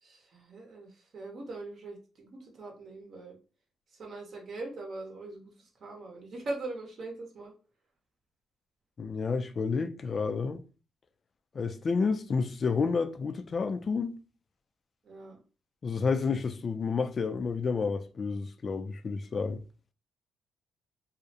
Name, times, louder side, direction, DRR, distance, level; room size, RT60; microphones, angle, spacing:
voice 1, 0.0-3.4 3.9-7.5 15.0-15.4, right 2 dB, 55° right, 0.7 m, -41 dB
voice 2, 9.0-10.6 11.5-14.1 15.8-19.6, left 5 dB, 40° left, 0.3 m, -30 dB
2.4 x 2.0 x 2.7 m
cardioid pair, 90°, 0 cm